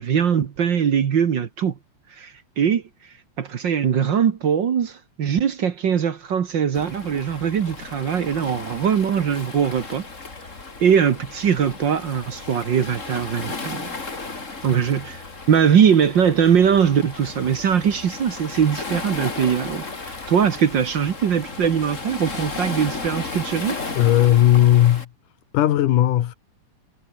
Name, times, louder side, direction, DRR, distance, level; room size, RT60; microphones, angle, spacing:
voice 1, 0.0-1.7 2.2-2.8 3.4-10.0 10.8-13.9 14.6-23.8, right 8 dB, 50° right, 1.5 m, -21 dB
Waves surf, 6.7-25.1, left 3 dB, 25° left, 3.0 m, -34 dB
voice 2, 23.9-25.1 25.5-26.4, left 12 dB, 85° left, 2.9 m, -16 dB
omnidirectional pair, 3.6 m